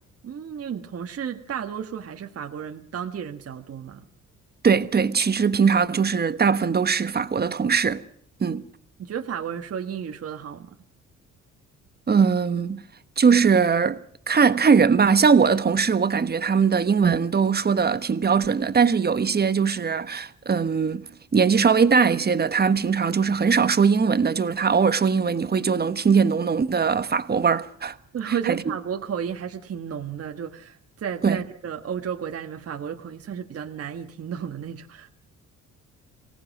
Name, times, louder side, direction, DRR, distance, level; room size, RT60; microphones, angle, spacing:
voice 1, 0.2-4.1 9.0-10.8 28.1-35.1, right 8 dB, 50° right, 1.6 m, -33 dB
voice 2, 4.6-8.0 8.4-8.6 12.1-12.9 13.2-14.0 14.3-21.0 21.3-27.9 28.4-28.6 31.2-31.4, right 6 dB, 30° right, 1.3 m, -20 dB
25.0 x 18.0 x 6.2 m
cardioid pair, 90°, 30 cm